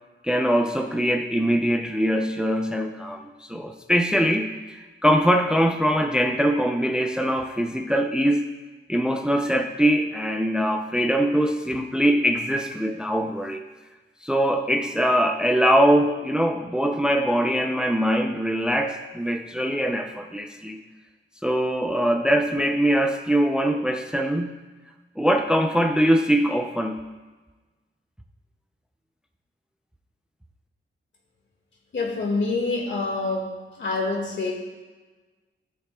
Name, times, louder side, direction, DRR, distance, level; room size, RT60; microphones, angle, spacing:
voice 1, 0.2-8.5 8.9-13.6 14.2-20.8 21.4-24.6 25.2-27.0, equal, 5° right, 4 dB, 0.5 m, -22 dB
voice 2, 31.9-33.5 33.8-34.5, left 3 dB, 65° left, 0 dB, 2.0 m, -26 dB
15.0 x 6.6 x 2.3 m, 1.3 s
wide cardioid pair, 100°, 21 cm